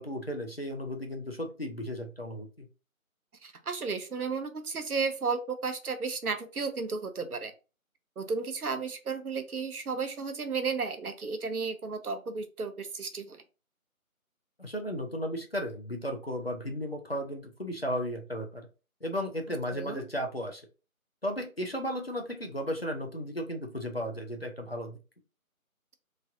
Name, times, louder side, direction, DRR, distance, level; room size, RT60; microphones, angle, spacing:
voice 1, 0.0-2.7 14.6-18.7 19.0-20.6 21.2-25.0, equal, 45° left, 3 dB, 0.5 m, -35 dB
voice 2, 3.4-7.5 8.2-13.4 19.7-20.1, right 4 dB, 85° right, 8 dB, 0.8 m, -33 dB
3.0 x 2.5 x 2.6 m, 0.33 s
figure-of-eight pair, 165°, 43 cm